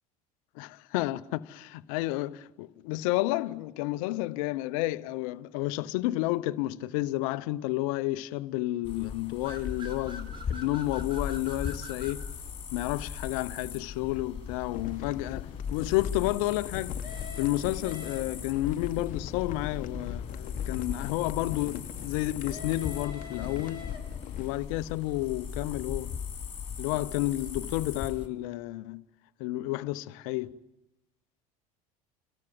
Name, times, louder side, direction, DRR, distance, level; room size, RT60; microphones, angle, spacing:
voice 1, 0.6-12.3 12.7-17.0 17.4-23.9 24.4-26.1 26.8-29.0 29.4-30.5, left 17 dB, 70° left, 0.8 m, -31 dB
sound 1, 8.8-28.3, left 6 dB, 30° left, 3.3 m, -39 dB
sound 2, 9.4-12.2 17.0-18.6 22.5-24.3, left 3 dB, 30° right, 4.0 m, -45 dB
sound 3, 14.7-24.6, left 10 dB, 50° left, 1.2 m, -41 dB
30.0 x 13.0 x 9.3 m
hypercardioid pair, 80°, 18 cm